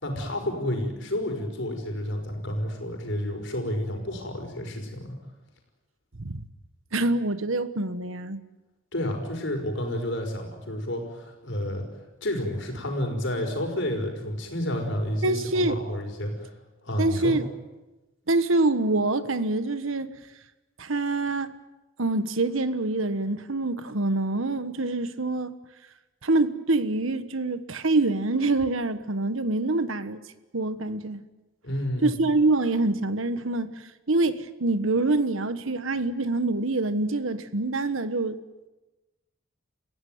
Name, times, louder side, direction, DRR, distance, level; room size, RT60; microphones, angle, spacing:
voice 1, 0.0-5.1 8.9-11.8 12.2-16.5 16.8-17.3 31.6-32.1, left 1 dB, 60° left, 3 dB, 5.6 m, -30 dB
voice 2, 6.9-8.4 15.2-15.8 17.0-17.5 18.3-20.1 20.8-21.5 22.0-25.5 26.2-30.2 30.5-31.2 32.0-33.7 34.1-38.3, right 2 dB, 75° right, 12 dB, 1.4 m, -25 dB
29.5 x 16.0 x 9.5 m, 1.1 s
head